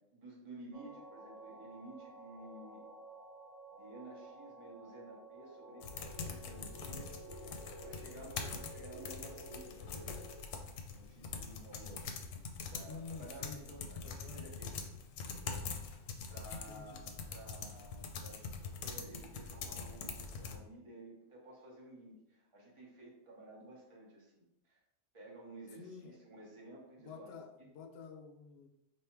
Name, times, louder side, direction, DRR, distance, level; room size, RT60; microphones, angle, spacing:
voice 1, 0.1-2.8 3.7-10.2 10.9-14.7 15.3-15.7 16.3-24.8 25.1-27.3, right 2 dB, 25° right, -3 dB, 1.0 m, -53 dB
sound 1, 0.7-10.4, right 1 dB, 80° right, 1.2 m, -52 dB
sound 2, 5.8-20.6, left 5 dB, 85° left, 1.0 m, -44 dB
voice 2, 12.9-13.7 14.0-14.4 16.7-17.1 25.8-26.2 27.0-28.7, left 5 dB, 65° left, 5 dB, 0.7 m, -50 dB
3.4 x 2.8 x 4.4 m, 0.87 s
omnidirectional pair, 1.4 m